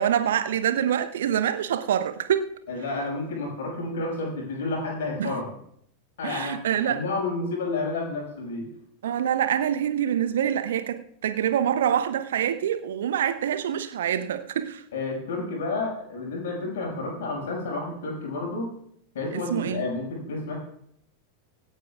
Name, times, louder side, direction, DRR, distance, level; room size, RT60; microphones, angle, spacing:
voice 1, 0.0-2.5 5.2-5.4 6.2-7.0 9.0-14.8 19.3-19.9, right 9 dB, 60° right, 0.8 m, -26 dB
voice 2, 2.7-5.5 6.2-6.6 6.8-8.7 14.9-18.7 19.1-20.6, left 3 dB, 60° left, 5.5 m, -30 dB
25.0 x 9.0 x 2.4 m
figure-of-eight pair, 90°, 0 cm